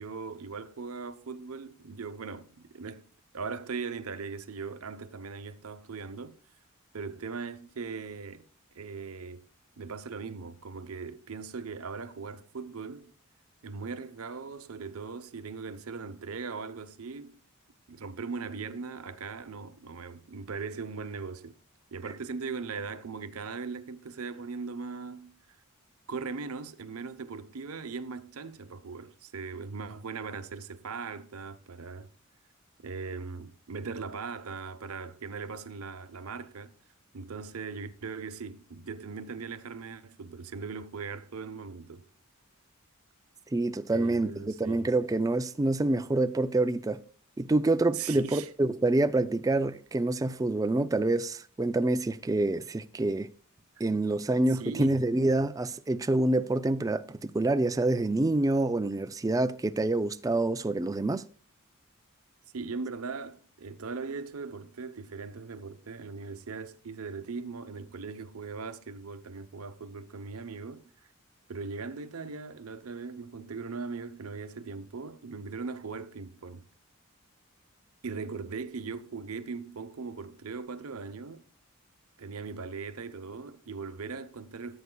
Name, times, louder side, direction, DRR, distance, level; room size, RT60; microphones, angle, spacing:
voice 1, 0.0-3.0 3.3-6.4 6.9-8.5 8.7-9.4 9.8-13.1 13.6-17.4 17.9-21.6 21.9-25.4 26.1-32.1 32.8-36.7 37.1-42.0 43.9-44.9 47.9-48.5 54.5-55.1 62.5-70.9 71.5-76.6 78.0-81.4 82.2-84.8, right 4 dB, 90° right, 0.8 m, -39 dB
voice 2, 43.5-47.0 47.4-53.3 53.8-61.2, right 2 dB, 15° right, 0.3 m, -27 dB
15.5 x 8.1 x 2.2 m
head